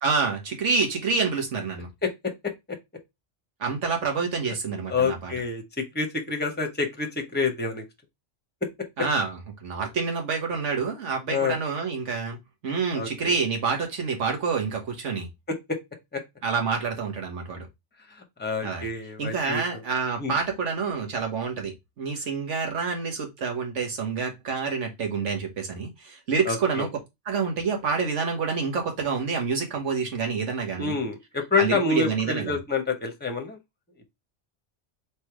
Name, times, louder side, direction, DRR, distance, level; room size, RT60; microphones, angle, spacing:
voice 1, 0.0-1.9 3.6-5.3 9.0-12.4 12.6-15.3 16.4-17.7 18.6-18.9 19.2-26.9 27.3-30.9 31.6-32.6, right 5 dB, 90° right, 1.5 m, -27 dB
voice 2, 2.0-2.8 4.5-4.6 4.9-7.8 11.3-11.6 12.9-13.4 15.5-15.8 16.1-16.2 18.1-19.8 20.2-20.3 26.4-26.9 30.8-33.6, left 4 dB, 10° left, 0.7 m, -28 dB
3.4 x 3.2 x 4.5 m
omnidirectional pair, 1.2 m